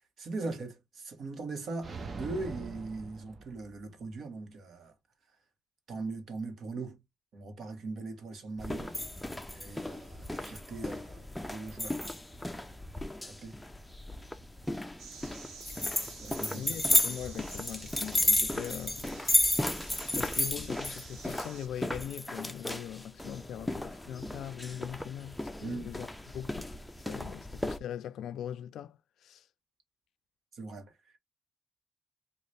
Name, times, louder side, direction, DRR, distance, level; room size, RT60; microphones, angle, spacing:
voice 1, 0.0-4.9 5.9-7.0 7.3-9.1 9.5-12.0 13.3-13.6 16.2-16.8 25.6-25.9 30.5-30.9, right 3 dB, 60° right, 1.2 m, -40 dB
sound 1, 1.8-4.0, right 4 dB, 40° right, 0.6 m, -42 dB
sound 2, 8.6-27.8, left 1 dB, 5° left, 0.5 m, -33 dB
sound 3, 15.0-21.7, right 5 dB, 80° right, 1.0 m, -50 dB
voice 2, 16.5-19.1 20.1-29.5, left 10 dB, 80° left, 0.3 m, -41 dB
3.8 x 2.4 x 3.3 m
cardioid pair, 100°, 0 cm